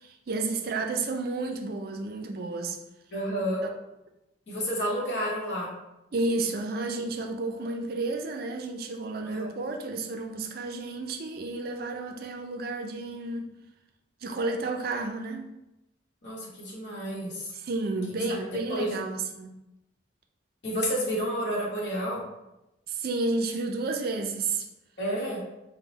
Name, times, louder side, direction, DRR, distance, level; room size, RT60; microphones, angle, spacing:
voice 1, 0.0-2.8 6.1-13.5 14.2-15.5 17.5-19.5 22.9-24.7, right 3 dB, 50° right, 4 dB, 0.4 m, -31 dB
voice 2, 3.1-3.6 4.5-5.7 9.2-9.5 16.2-17.5 18.1-19.0 20.6-22.2 25.0-25.4, equal, 60° left, -5 dB, 1.1 m, -30 dB
3.7 x 2.1 x 3.9 m, 0.92 s
head